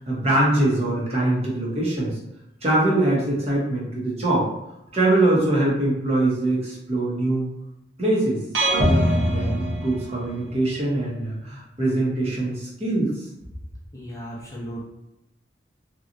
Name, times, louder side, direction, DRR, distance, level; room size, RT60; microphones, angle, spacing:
voice 1, 0.0-2.2 2.6-4.5 4.9-7.5 8.0-8.4 8.7-13.1, right 1 dB, 35° right, -5 dB, 0.9 m, -23 dB
sound 1, 8.5-10.5, equal, 90° right, 0.7 m, -22 dB
voice 2, 13.9-14.8, equal, 20° left, -5 dB, 0.6 m, -35 dB
2.9 x 2.3 x 2.6 m, 0.88 s
head